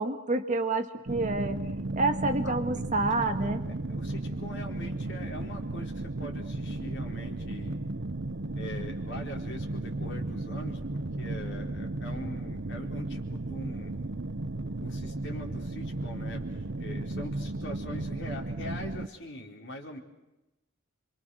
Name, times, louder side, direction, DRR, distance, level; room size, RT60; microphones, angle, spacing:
voice 1, 0.0-1.6 1.9-3.6, right 2 dB, 35° right, 6 dB, 1.9 m, -28 dB
sound 1, 1.1-19.1, right 2 dB, 55° right, 0.9 m, -34 dB
voice 2, 3.4-7.8 8.6-13.9 14.8-20.0, left 1 dB, 55° left, 1 dB, 4.6 m, -43 dB
28.0 x 25.0 x 6.4 m, 0.95 s
head